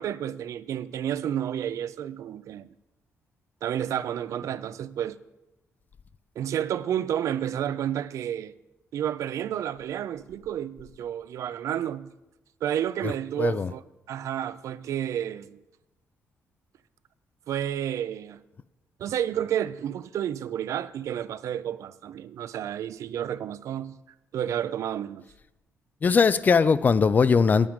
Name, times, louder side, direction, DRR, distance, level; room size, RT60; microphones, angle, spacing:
voice 1, 0.0-2.7 3.6-5.2 6.4-8.5 8.9-12.1 12.6-13.8 14.1-15.6 17.5-18.4 19.0-24.0 24.3-25.2, right 10 dB, 70° right, 0.4 m, -30 dB
voice 2, 13.4-13.7 26.0-27.7, left 5 dB, 30° left, 0.3 m, -20 dB
9.0 x 8.8 x 5.0 m
cardioid pair, 135°, 6 cm